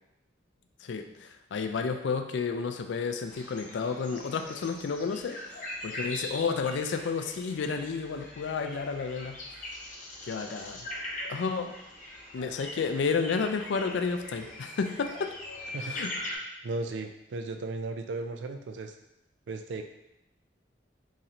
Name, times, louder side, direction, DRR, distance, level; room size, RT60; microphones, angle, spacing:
voice 1, 0.8-5.4 5.8-9.4 10.2-10.9 11.3-11.7 12.3-15.3 15.8-16.1, left 5 dB, 75° left, 6 dB, 0.4 m, -31 dB
sound 1, 3.3-16.4, left 1 dB, 40° left, 0.7 m, -41 dB
voice 2, 16.6-18.9 19.5-19.8, right 3 dB, 75° right, 5 dB, 0.4 m, -35 dB
3.9 x 3.1 x 2.8 m, 0.87 s
head